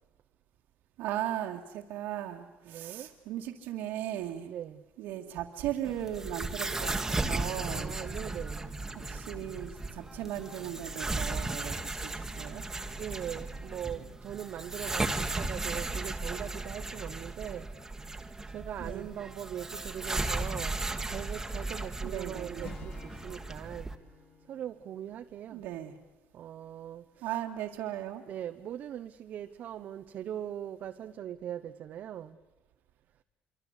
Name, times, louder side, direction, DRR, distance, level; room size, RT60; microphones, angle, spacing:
voice 1, 1.0-4.5 5.0-8.0 9.1-12.6 18.8-19.1 22.0-22.7 25.5-25.9 27.2-28.2, right 12 dB, 85° right, 2.1 m, -37 dB
voice 2, 2.6-3.1 4.4-4.8 7.7-8.8 13.0-17.7 18.5-23.9 24.5-25.6 26.3-27.4 28.3-32.4, right 10 dB, 55° right, 1.0 m, -41 dB
sound 1, 5.8-24.0, right 2 dB, 10° right, 1.8 m, -36 dB
sound 2, 7.4-18.5, left 4 dB, 80° left, 3.2 m, -57 dB
Acoustic guitar / Strum, 22.6-26.1, left 7 dB, 50° left, 2.7 m, -53 dB
26.0 x 24.5 x 8.2 m
cardioid pair, 115°, 3 cm